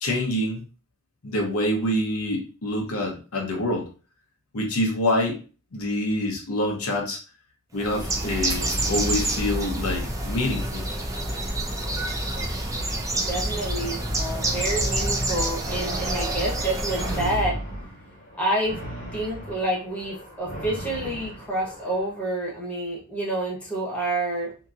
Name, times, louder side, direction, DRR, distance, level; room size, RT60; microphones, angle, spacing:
voice 1, 0.0-0.6 1.2-3.9 4.5-5.4 5.7-7.2 7.7-10.8, left 1 dB, 85° left, 0 dB, 0.9 m, -26 dB
Bird, 7.8-17.4, right 1 dB, 15° right, 0.5 m, -27 dB
voice 2, 13.1-17.6 18.4-18.8 19.1-24.5, right 1 dB, 5° left, -5 dB, 1.1 m, -28 dB
sound 1, 15.7-22.1, equal, 55° left, 1.2 m, -37 dB
2.8 x 2.7 x 2.5 m, 0.35 s
head